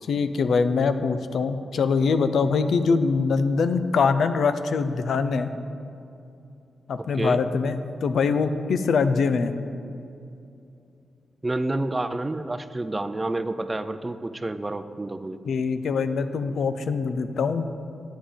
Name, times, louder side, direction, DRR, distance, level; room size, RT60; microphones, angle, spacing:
voice 1, 0.1-5.5 6.9-9.5 15.5-17.6, left 5 dB, 75° left, 10 dB, 0.5 m, -23 dB
voice 2, 11.4-15.4, right 2 dB, 25° right, 11 dB, 0.4 m, -29 dB
9.1 x 7.2 x 5.1 m, 2.6 s
cardioid pair, 65°, 0 cm